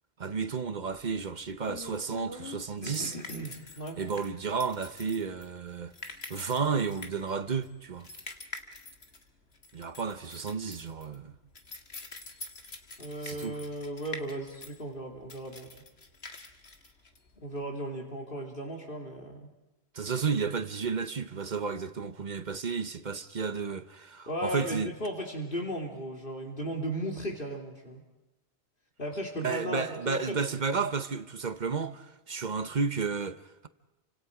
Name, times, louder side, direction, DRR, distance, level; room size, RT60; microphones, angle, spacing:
voice 1, 0.2-3.2 4.0-5.9 6.3-8.1 9.7-11.3 13.2-13.6 19.9-24.9 29.4-33.7, right 5 dB, 50° right, 1.0 m, -32 dB
sound 1, 0.9-17.6, left 3 dB, 75° left, 2.0 m, -46 dB
voice 2, 2.8-4.0 13.0-15.7 17.4-19.5 24.3-28.0 29.0-30.4, right 1 dB, 60° left, 2.7 m, -36 dB
29.5 x 25.5 x 4.9 m
omnidirectional pair, 1.1 m